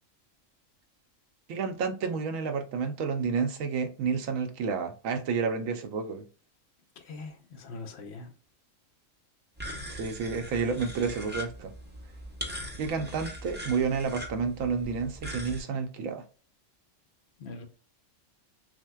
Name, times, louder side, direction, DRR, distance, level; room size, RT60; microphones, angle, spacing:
voice 1, 1.5-6.3 10.0-11.7 12.8-16.2, right 5 dB, 85° right, 1.1 m, -30 dB
voice 2, 7.0-8.3 17.4-17.7, left 3 dB, 60° left, 0.9 m, -42 dB
sound 1, 9.6-15.6, equal, 10° right, 0.6 m, -40 dB
6.1 x 2.1 x 2.2 m
omnidirectional pair, 1.4 m